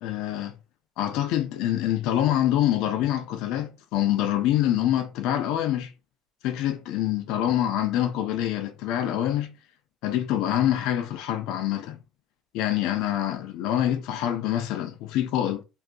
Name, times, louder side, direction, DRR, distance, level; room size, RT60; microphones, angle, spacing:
voice 1, 0.0-0.5 1.0-5.9 6.4-9.5 10.0-12.0 12.5-15.6, left 12 dB, 75° left, 0.4 m, -25 dB
2.6 x 2.3 x 2.2 m
cardioid pair, 135°, 0 cm